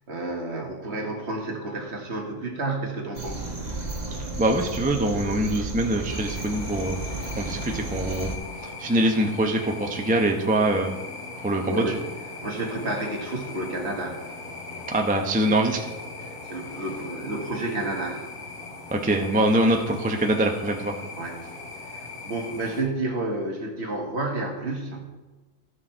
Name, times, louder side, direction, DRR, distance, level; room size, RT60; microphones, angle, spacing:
voice 1, 0.1-3.5 11.7-12.0 12.4-14.2 14.7-14.8 16.3-18.2 21.2-21.4 21.9-25.0, right 2 dB, 45° right, 1 dB, 1.8 m, -30 dB
sound 1, 3.1-8.4, right 2 dB, 25° right, 1.7 m, -33 dB
voice 2, 4.4-7.0 7.2-8.3 8.8-10.9 11.4-12.0 14.9-15.8 18.9-20.9, right 1 dB, 10° right, 2 dB, 0.5 m, -23 dB
sound 2, 6.1-22.8, left 3 dB, 75° left, 3.9 m, -39 dB
14.0 x 6.4 x 4.5 m, 1.2 s
omnidirectional pair, 1.6 m